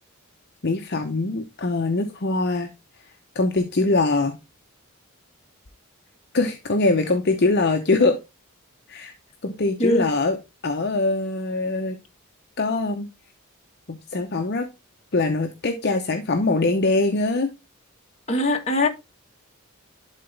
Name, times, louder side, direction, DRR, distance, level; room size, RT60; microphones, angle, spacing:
voice 1, 0.6-2.7 3.3-4.4 6.3-8.2 8.9-9.1 9.4-10.4 10.6-12.0 12.6-13.1 13.9-14.7 15.1-17.5, left 3 dB, 50° left, 0.7 m, -22 dB
voice 2, 6.8-7.1 9.8-10.1 18.3-18.9, left 1 dB, 30° left, 1.4 m, -22 dB
11.5 x 3.9 x 3.3 m
head